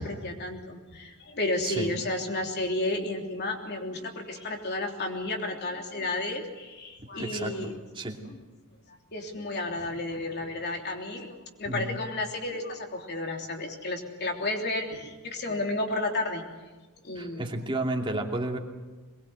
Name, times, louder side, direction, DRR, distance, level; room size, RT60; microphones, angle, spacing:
voice 1, 0.0-7.7 8.3-8.4 9.1-11.3 11.6-16.5 17.0-17.5, left 2 dB, 50° left, 2 dB, 3.3 m, -32 dB
voice 2, 7.0-8.2 11.6-11.9 17.2-18.6, right 2 dB, 25° right, 1 dB, 2.7 m, -32 dB
22.5 x 21.5 x 8.0 m, 1.2 s
head